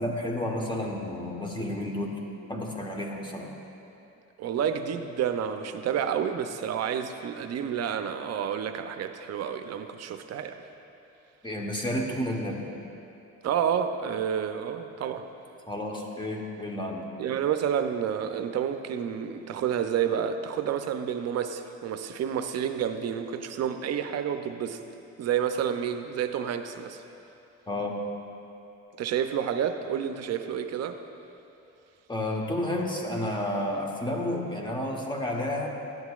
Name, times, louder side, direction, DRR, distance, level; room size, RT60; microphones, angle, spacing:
voice 1, 0.0-2.2 2.5-3.5 11.4-12.7 15.7-17.1 27.7-28.0 32.1-35.7, left 1 dB, 15° left, 0 dB, 1.0 m, -31 dB
voice 2, 4.4-10.6 13.4-15.2 17.2-24.8 25.2-27.0 29.0-31.0, right 8 dB, 60° right, 8 dB, 0.5 m, -29 dB
12.0 x 7.9 x 2.4 m, 2.8 s
cardioid pair, 90°, 30 cm